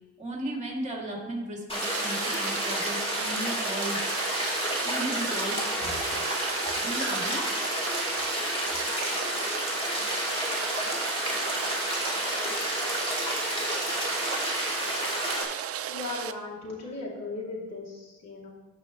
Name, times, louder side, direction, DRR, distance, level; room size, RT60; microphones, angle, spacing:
voice 1, 0.2-4.0 4.8-6.2 6.8-7.4, right 1 dB, 25° right, -1 dB, 2.5 m, -35 dB
sound 1, 1.7-15.4, equal, 20° left, 2.4 m, -30 dB
Rain, 1.8-16.3, right 10 dB, 50° right, 0.5 m, -35 dB
voice 2, 15.9-18.5, left 3 dB, 60° left, -3 dB, 2.8 m, -37 dB
13.0 x 5.4 x 3.1 m, 1.1 s
cardioid pair, 90°, 30 cm